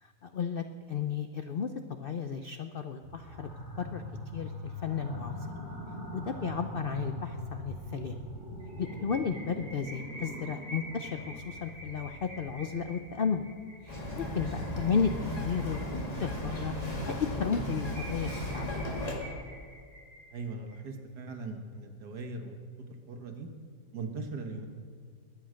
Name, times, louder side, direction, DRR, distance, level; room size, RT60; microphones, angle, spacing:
voice 1, 0.0-3.5 3.8-4.0 4.3-5.3 6.1-8.2 8.8-13.5 13.8-15.8 16.2-16.7 17.1-18.7, left 6 dB, 80° left, 7 dB, 0.5 m, -33 dB
sound 1, 3.0-13.5, equal, 10° right, 2.8 m, -42 dB
sound 2, 8.6-16.5 16.9-17.0 17.3-17.4 17.6-20.7, right 1 dB, 60° left, 5.4 m, -48 dB
Bird vocalization bird call bird song, 13.9-19.1, left 1 dB, 20° left, 2.2 m, -35 dB
voice 2, 20.3-23.5 23.9-24.7, right 3 dB, 70° right, 5 dB, 1.9 m, -40 dB
21.5 x 8.8 x 6.3 m, 2.1 s
omnidirectional pair, 1.8 m